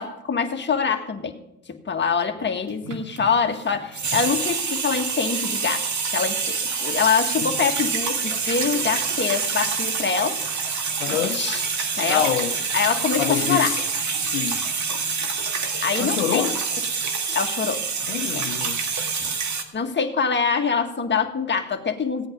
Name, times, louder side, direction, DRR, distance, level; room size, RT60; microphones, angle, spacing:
voice 1, 0.0-1.4 1.7-10.4 11.1-11.6 11.9-12.3 12.7-13.8 14.1-14.3 15.2-15.3 15.8-16.5 17.3-17.8 18.3-18.5 19.7-22.3, left 6 dB, 30° left, 1.7 m, -25 dB
sound 1, 2.7-3.5 3.7-19.6, right 5 dB, 50° right, 1.9 m, -26 dB
voice 2, 11.0-11.4 12.1-12.6 13.2-13.8 14.3-14.6 16.0-16.6 18.1-18.9, left 10 dB, 90° left, 0.8 m, -26 dB
16.5 x 8.8 x 5.2 m
hypercardioid pair, 60°, 38 cm